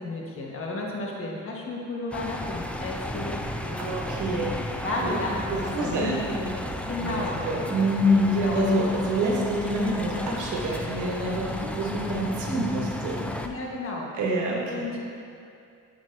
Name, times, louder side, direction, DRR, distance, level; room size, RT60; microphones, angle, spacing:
voice 1, 0.0-3.9 4.8-6.5 6.9-7.4 8.4-8.6 13.4-14.2 14.7-15.0, left 2 dB, 45° left, -2 dB, 1.3 m, -33 dB
sound 1, 2.1-13.5, left 1 dB, 5° left, 0.4 m, -34 dB
voice 2, 3.8-4.6 5.0-5.1 5.5-6.3 7.0-13.2 14.1-14.9, equal, 80° right, -2 dB, 1.3 m, -26 dB
8.0 x 6.2 x 2.6 m, 2.5 s
cardioid pair, 90°, 30 cm